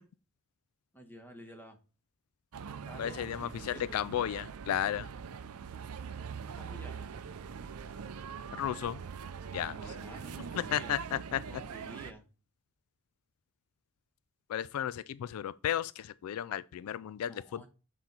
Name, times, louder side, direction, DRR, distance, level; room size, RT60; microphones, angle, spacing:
voice 1, 0.9-1.8 2.8-4.0 6.5-7.1 9.6-11.0 11.5-12.3 17.2-17.7, equal, 10° left, 1.2 m, -51 dB
sound 1, 2.5-12.1, right 6 dB, 80° right, 0.5 m, -43 dB
voice 2, 3.0-5.1 8.5-9.0 9.5-9.8 10.7-11.4 14.5-17.7, left 10 dB, 80° left, 0.3 m, -34 dB
7.8 x 4.0 x 4.3 m
head